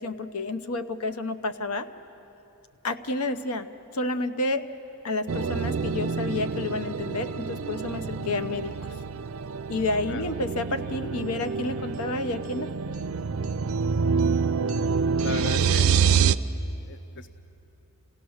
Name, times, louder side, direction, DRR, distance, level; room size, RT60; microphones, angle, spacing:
voice 1, 0.0-1.9 2.8-4.6 5.0-8.7 9.7-12.7, left 2 dB, 85° left, 10 dB, 0.8 m, -30 dB
sound 1, 5.3-16.4, right 6 dB, 65° right, 0.5 m, -27 dB
voice 2, 15.2-15.9 16.9-17.3, left 6 dB, 55° left, 10 dB, 0.6 m, -36 dB
28.5 x 16.5 x 6.4 m, 2.9 s
head